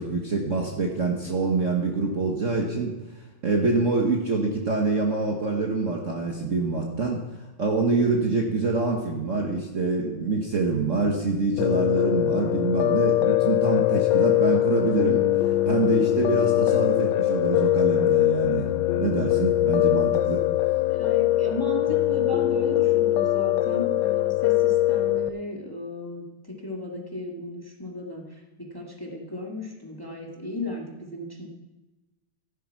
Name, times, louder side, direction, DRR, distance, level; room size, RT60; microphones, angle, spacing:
voice 1, 0.0-2.9 3.4-7.2 7.6-18.7 19.0-20.4, right 3 dB, 40° right, 0 dB, 1.5 m, -25 dB
Piano, 11.6-25.3, left 14 dB, 70° left, 1.2 m, -22 dB
voice 2, 20.9-31.5, left 1 dB, 10° left, -1 dB, 1.8 m, -35 dB
14.5 x 12.0 x 4.7 m, 1.1 s
omnidirectional pair, 2.3 m